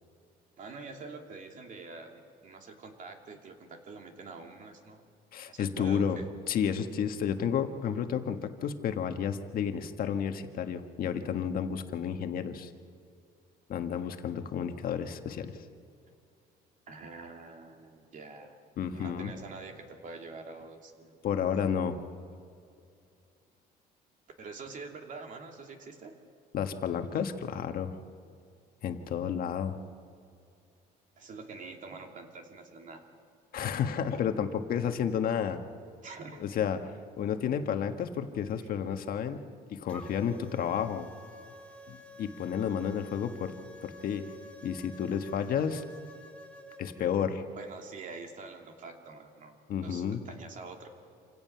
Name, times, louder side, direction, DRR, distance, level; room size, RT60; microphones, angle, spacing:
voice 1, 0.6-5.0 5.5-6.3 16.9-18.6 18.9-21.7 24.4-26.2 31.2-33.1 36.0-36.6 38.6-39.0 47.5-50.9, right 3 dB, 50° right, 3 dB, 2.7 m, -46 dB
voice 2, 5.3-6.2 6.5-12.7 13.7-15.6 18.8-19.3 21.2-22.0 26.5-28.0 28.8-29.8 33.5-35.6 36.4-36.8 37.2-39.4 39.7-41.1 41.9-43.5 43.8-44.2 44.6-45.8 46.8-47.4 49.7-50.2, left 8 dB, 60° left, 6 dB, 1.5 m, -31 dB
sound 1, 39.9-47.1, left 2 dB, 5° left, 2.0 m, -50 dB
27.0 x 17.0 x 5.8 m, 2.4 s
cardioid pair, 110°, 17 cm